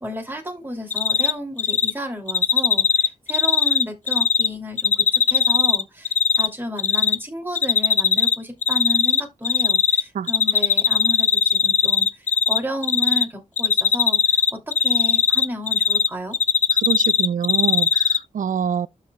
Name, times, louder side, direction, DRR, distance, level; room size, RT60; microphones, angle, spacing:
voice 1, 0.0-16.4, equal, 15° right, 2.6 m, -32 dB
Cricket, 0.9-1.3 1.6-1.9 2.3-4.5 4.8-6.5 6.8-7.2 7.6-8.4 8.6-10.0 10.3-12.6 12.8-13.2 13.6-16.1 16.3-18.2, left 6 dB, 65° left, 0.7 m, -18 dB
voice 2, 16.8-18.9, right 7 dB, 70° right, 0.4 m, -25 dB
12.5 x 4.2 x 2.2 m
wide cardioid pair, 130°, 14 cm